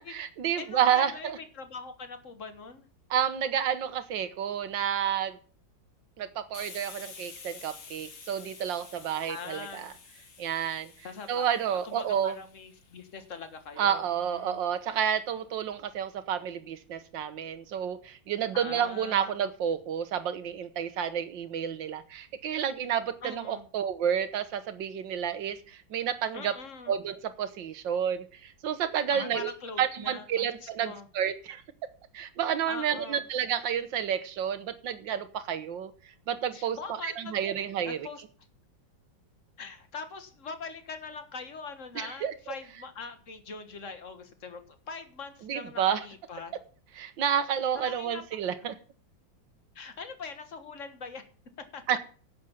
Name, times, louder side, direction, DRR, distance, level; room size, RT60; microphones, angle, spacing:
voice 1, 0.0-1.4 3.1-5.4 6.2-9.9 10.4-10.9 11.3-12.4 13.8-26.5 26.9-29.5 29.8-31.6 32.1-35.9 36.3-38.1 42.0-42.3 45.5-46.0 47.0-48.7 51.9-52.0, right 8 dB, 75° right, 11 dB, 1.8 m, -30 dB
voice 2, 0.5-2.9 9.2-9.9 11.0-11.6 11.8-14.6 18.5-19.3 23.2-23.7 26.3-26.9 29.1-31.1 32.7-33.2 36.5-37.6 37.8-38.2 39.6-46.6 47.7-48.2 48.6-48.7 49.8-51.2 51.7-51.8, left 5 dB, 40° left, 8 dB, 1.8 m, -42 dB
Hiss, 6.5-13.9, left 5 dB, 70° left, 2.7 m, -50 dB
11.5 x 8.3 x 7.3 m, 0.42 s
omnidirectional pair, 2.1 m